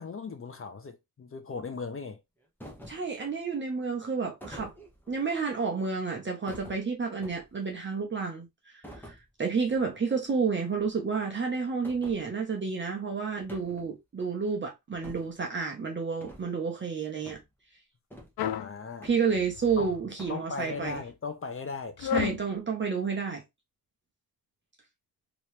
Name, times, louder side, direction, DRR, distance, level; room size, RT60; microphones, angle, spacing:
voice 1, 0.0-2.2 18.6-19.1 19.8-19.9 20.3-22.0, left 4 dB, 35° left, 0.6 m, -37 dB
sound 1, 2.6-3.1 4.4-5.2 6.5-7.7 8.8-9.2 9.7-9.9 10.2-10.3 10.7-10.9 11.8-12.2 13.4-13.9 14.9-15.4 16.2-16.5 17.3-17.5 18.1-18.5 19.0-19.7 20.2-20.4, equal, 5° left, 1.0 m, -47 dB
voice 2, 2.9-4.7 5.1-8.5 8.7-17.4 19.0-21.0 22.0-23.4, right 5 dB, 30° right, 0.9 m, -30 dB
sound 2, 18.4-18.7 19.3-20.0 20.7-21.1 22.0-22.4, left 9 dB, 85° left, 0.5 m, -32 dB
3.1 x 3.0 x 3.1 m
wide cardioid pair, 130°, 36 cm